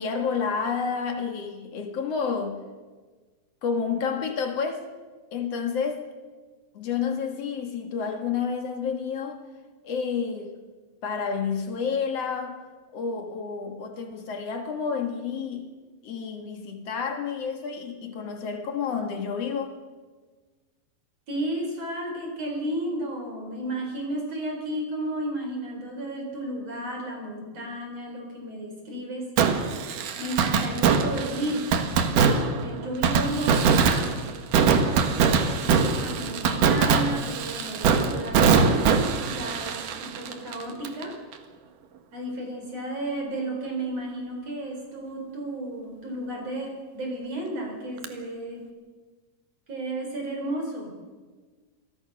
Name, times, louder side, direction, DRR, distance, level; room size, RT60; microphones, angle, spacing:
voice 1, 0.0-2.6 3.6-4.9 5.3-6.1 6.7-9.4 9.8-10.5 11.0-12.6 12.9-15.7 16.0-19.8, left 6 dB, 55° left, 1.9 m, -30 dB
voice 2, 21.3-29.3 30.2-31.7 32.6-34.1 35.4-38.6 39.2-41.2 42.1-48.6 49.7-50.9, right 1 dB, 35° right, 4.9 m, -33 dB
Fireworks, 29.4-41.0 41.3-41.4 48.0-48.1, right 5 dB, 60° right, 2.6 m, -23 dB
27.5 x 20.5 x 6.1 m
omnidirectional pair, 5.1 m